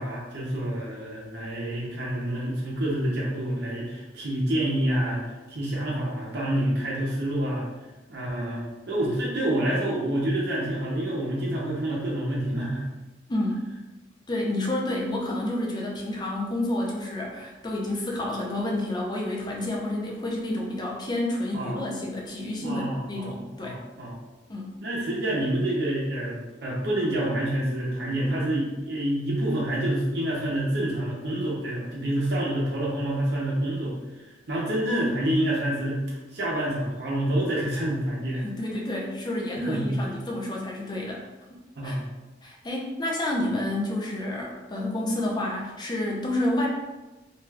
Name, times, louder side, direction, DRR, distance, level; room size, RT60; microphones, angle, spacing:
voice 1, 0.0-5.2 5.5-7.6 8.1-12.8 21.5-21.8 22.6-23.3 23.6-24.2 24.8-38.4 39.6-40.0 41.8-42.1, right 1 dB, 65° right, -6 dB, 0.7 m, -28 dB
voice 2, 13.3-13.7 14.3-23.8 24.5-24.7 38.3-41.2 41.8-42.0 42.4-46.7, left 1 dB, 25° left, -2 dB, 0.5 m, -29 dB
2.4 x 2.3 x 3.2 m, 1.1 s
head